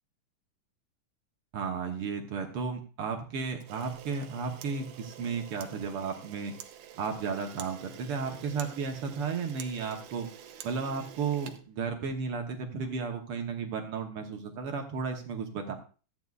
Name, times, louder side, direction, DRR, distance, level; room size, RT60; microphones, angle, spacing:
voice 1, 1.5-6.5 7.0-10.3 10.6-15.7, right 5 dB, 65° right, 3 dB, 1.4 m, -34 dB
Camera, 3.6-12.3, right 10 dB, 85° right, 1.4 m, -48 dB
14.5 x 9.3 x 2.4 m, 0.36 s
omnidirectional pair, 3.7 m